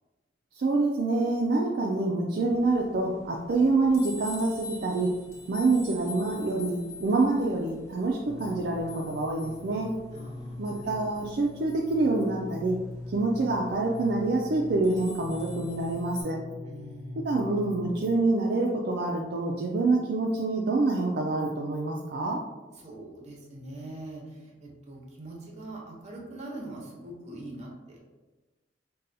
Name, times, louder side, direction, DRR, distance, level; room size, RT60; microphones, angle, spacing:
voice 1, 0.6-5.1 5.5-9.9 10.6-12.8 13.1-16.4 17.2-22.4, right 3 dB, 60° right, -1 dB, 0.4 m, -26 dB
sound 1, 2.5-16.2, left 2 dB, 15° left, 1.0 m, -47 dB
sound 2, 8.3-18.4 19.2-19.3, left 2 dB, 85° left, 0.5 m, -42 dB
voice 2, 10.1-10.9 16.6-17.3 22.8-28.0, right 1 dB, 40° right, -2 dB, 0.8 m, -43 dB
5.4 x 2.2 x 2.6 m, 1.2 s
head